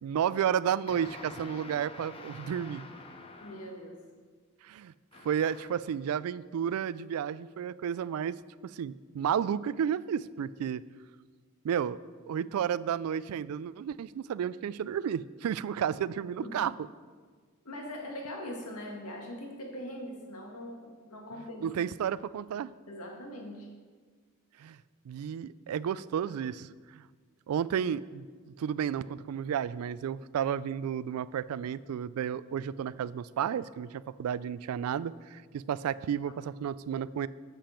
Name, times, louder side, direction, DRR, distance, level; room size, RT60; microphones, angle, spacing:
voice 1, 0.0-2.8 4.6-4.9 5.2-8.4 8.6-10.8 11.6-12.0 12.3-16.7 21.6-22.7 24.6-24.8 25.1-27.0 27.5-37.3, right 8 dB, 80° right, 17 dB, 0.3 m, -32 dB
sound 1, 0.9-3.9 5.1-5.9, left 2 dB, 25° left, 0.6 m, -47 dB
voice 2, 3.4-4.0 16.4-16.6 17.7-21.7 22.9-23.7, left 1 dB, 90° left, 0 dB, 1.9 m, -41 dB
10.0 x 7.5 x 4.4 m, 1.5 s
head